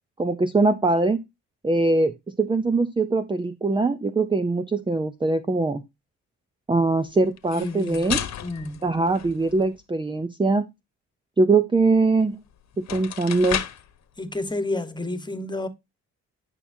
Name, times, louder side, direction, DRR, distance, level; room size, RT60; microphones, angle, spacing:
voice 1, 0.2-1.2 1.6-5.8 6.7-8.2 8.8-10.7 11.4-12.4 12.8-13.6, right 3 dB, 15° right, 0.7 m, -22 dB
sound 1, 7.4-9.8 12.2-12.3 12.7-13.9, left 9 dB, 65° left, 1.3 m, -33 dB
voice 2, 7.5-8.1 8.4-8.9 14.2-15.7, left 2 dB, 15° left, 1.4 m, -30 dB
10.5 x 5.6 x 2.7 m
cardioid pair, 90°, 30 cm